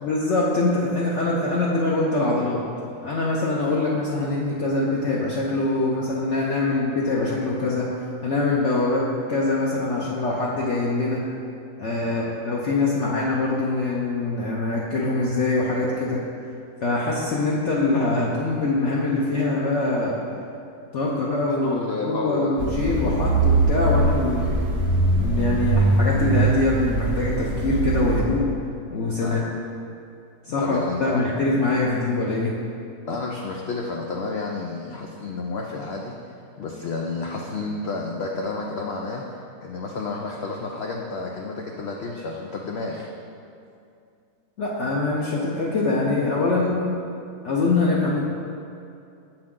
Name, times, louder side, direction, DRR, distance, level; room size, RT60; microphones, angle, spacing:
voice 1, 0.0-2.6 3.0-7.9 8.2-11.2 11.8-16.2 16.8-20.2 20.9-21.8 22.0-24.5 25.2-28.4 28.9-29.4 30.5-32.6 44.6-46.8 47.4-48.2, left 2 dB, 60° left, -4 dB, 0.8 m, -23 dB
voice 2, 12.0-12.4 21.6-22.6 29.2-29.5 30.4-31.2 33.0-39.2 39.6-43.1, left 3 dB, 90° left, 0 dB, 0.5 m, -31 dB
sound 1, 22.6-28.2, right 3 dB, 55° right, 0.8 m, -22 dB
7.5 x 4.7 x 3.6 m, 2.5 s
omnidirectional pair, 1.7 m